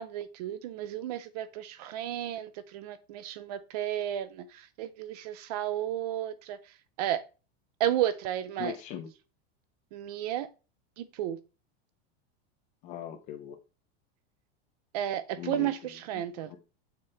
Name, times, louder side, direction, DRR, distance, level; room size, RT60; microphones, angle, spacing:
voice 1, 0.0-6.6 7.0-7.2 7.8-8.7 9.9-10.5 11.0-11.4 14.9-16.6, right 11 dB, 40° right, 0.5 m, -33 dB
voice 2, 8.6-9.1 12.8-13.6 15.4-16.6, left 10 dB, 20° left, 0.5 m, -41 dB
6.7 x 5.7 x 3.2 m
supercardioid pair, 180°, 32 cm